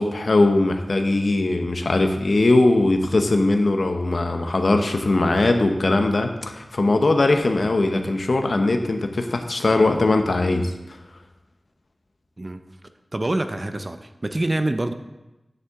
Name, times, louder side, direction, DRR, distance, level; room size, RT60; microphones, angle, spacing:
voice 1, 0.0-10.7, left 2 dB, 70° left, 5 dB, 0.8 m, -20 dB
voice 2, 13.1-14.9, right 1 dB, 40° right, 8 dB, 0.6 m, -26 dB
9.2 x 6.8 x 3.6 m, 1.0 s
wide cardioid pair, 50°, 0 cm